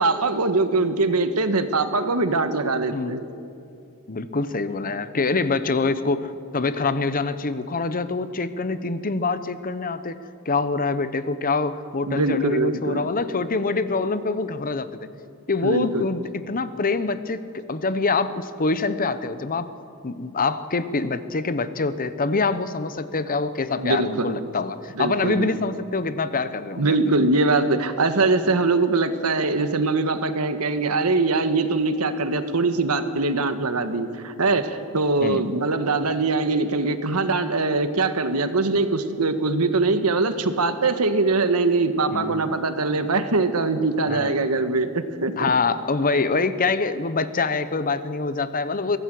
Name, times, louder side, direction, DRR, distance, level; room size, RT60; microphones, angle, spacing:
voice 1, 0.0-3.2 12.1-13.1 15.6-16.0 23.8-24.4 25.0-25.5 26.8-45.5, right 3 dB, 85° right, 9 dB, 1.4 m, -22 dB
voice 2, 4.1-14.9 15.5-19.7 20.0-27.0 35.2-35.4 42.1-42.6 44.1-44.3 45.4-49.0, left 3 dB, 40° left, 13 dB, 0.9 m, -25 dB
23.5 x 17.5 x 7.7 m, 2.5 s
head